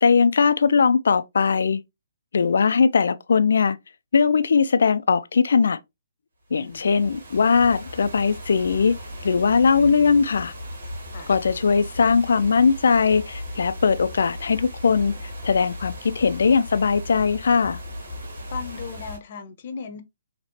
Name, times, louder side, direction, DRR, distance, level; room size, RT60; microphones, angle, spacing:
voice 1, 0.0-1.8 2.3-3.8 4.1-5.8 6.5-9.0 9.2-10.5 11.3-15.2 15.4-17.8, left 5 dB, 75° left, 0.4 m, -20 dB
voice 2, 6.5-6.8 11.1-11.3 18.5-20.0, left 6 dB, 50° left, 0.7 m, -36 dB
sound 1, 6.5-19.2, left 1 dB, 70° right, 1.8 m, -37 dB
4.2 x 2.9 x 2.9 m
hypercardioid pair, 145°, 0 cm